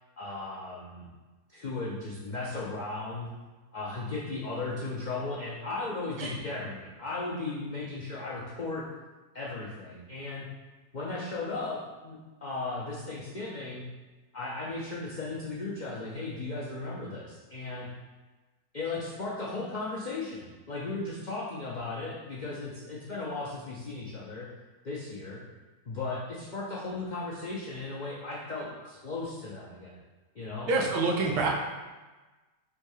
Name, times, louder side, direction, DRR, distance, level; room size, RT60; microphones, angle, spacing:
voice 1, 0.2-1.1 1.5-3.3 3.7-8.9 9.3-10.5 10.9-13.8 14.3-17.9 18.7-24.5 24.8-25.4 25.9-30.0 30.3-30.7, left 3 dB, 85° left, -6 dB, 0.4 m, -36 dB
voice 2, 30.7-31.5, right 3 dB, 90° right, -1 dB, 1.3 m, -26 dB
3.5 x 2.7 x 4.7 m, 1.2 s
omnidirectional pair, 1.6 m